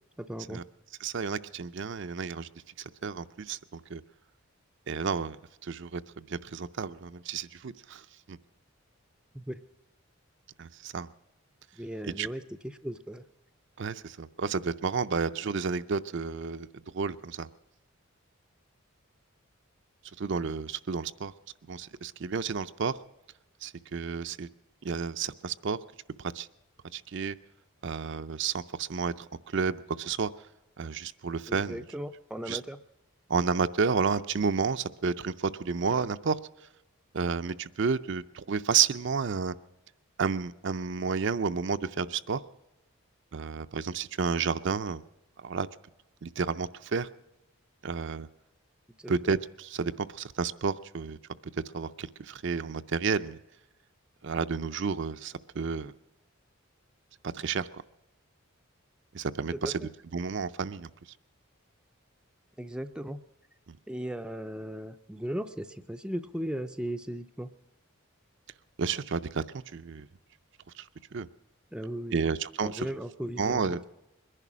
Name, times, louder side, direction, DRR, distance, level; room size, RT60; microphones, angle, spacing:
voice 1, 0.2-0.6 9.3-9.6 11.8-13.2 31.5-32.8 49.0-49.3 59.5-59.9 62.6-63.2 63.9-67.5 71.7-72.2 72.6-73.8, equal, 5° right, 7 dB, 0.5 m, -37 dB
voice 2, 1.0-2.5 3.0-4.0 4.9-8.0 8.3-8.4 10.6-11.1 12.0-12.3 13.8-16.7 16.9-17.5 20.2-21.3 21.7-23.0 23.6-24.5 24.8-25.8 26.3-26.5 26.9-27.4 27.8-29.1 29.5-30.3 30.8-31.8 32.5-32.6 33.3-36.4 37.1-39.5 40.2-42.4 43.3-45.0 45.4-45.7 46.2-47.1 47.8-48.3 49.1-51.2 51.7-53.4 54.2-55.9 57.3-57.7 59.1-59.8 60.1-60.9 63.7-63.8 68.8-69.4 69.7-70.1 70.8-70.9 71.1-71.3 72.1-72.9 73.4-73.8, right 5 dB, 55° right, 11 dB, 0.5 m, -31 dB
21.5 x 11.0 x 6.1 m, 0.93 s
head